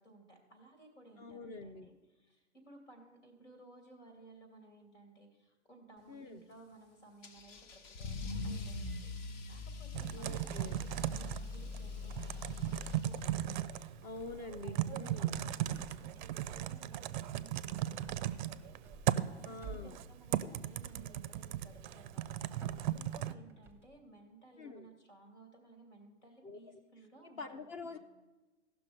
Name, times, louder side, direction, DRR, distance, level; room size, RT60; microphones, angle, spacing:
voice 1, 0.0-13.3 14.4-17.1 17.3-17.5 17.9-28.0, right 2 dB, 85° left, 3 dB, 3.0 m, -58 dB
voice 2, 1.2-1.9 6.1-6.4 10.1-10.8 14.0-15.3 19.4-20.0 21.4-21.5 24.6-24.9 26.4-26.8 27.2-28.0, left 3 dB, 25° left, 9 dB, 0.4 m, -46 dB
Car / Engine starting / Accelerating revving vroom, 7.2-13.7, left 3 dB, 40° left, 0.9 m, -43 dB
Typing, 9.9-23.3, right 12 dB, 40° right, 0.4 m, -37 dB
sound 1, 13.2-13.8 14.1-14.7 15.0-24.0, right 4 dB, 5° right, 0.7 m, -54 dB
15.5 x 6.0 x 5.1 m, 1.2 s
figure-of-eight pair, 105°, 36 cm